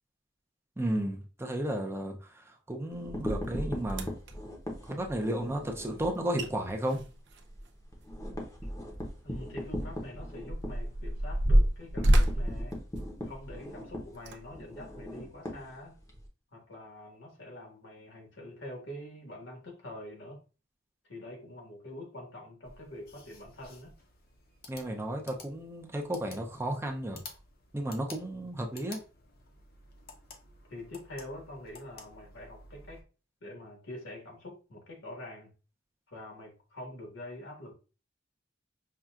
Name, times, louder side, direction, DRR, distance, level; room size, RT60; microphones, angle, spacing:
voice 1, 0.8-4.1 4.8-7.1 24.7-27.2 27.7-29.0, right 1 dB, 15° right, 0.5 m, -33 dB
sound 1, 2.9-6.1 6.5-6.7 7.0-7.1 7.4-16.3, equal, 20° left, 0.8 m, -39 dB
sound 2, 3.4-3.5 3.9-4.3 6.0-6.1 6.4-6.5 6.8-8.6 9.0-9.1 9.8-13.6 14.1-14.4 15.0-15.1, equal, 65° right, 0.5 m, -27 dB
voice 2, 9.2-12.8 13.2-16.0 16.5-20.4 21.0-23.9 30.7-33.0 33.4-35.5 36.1-37.7, left 1 dB, 80° left, 1.6 m, -45 dB
sound 3, 22.6-33.0, left 3 dB, 55° left, 0.8 m, -53 dB
5.5 x 2.4 x 2.4 m
head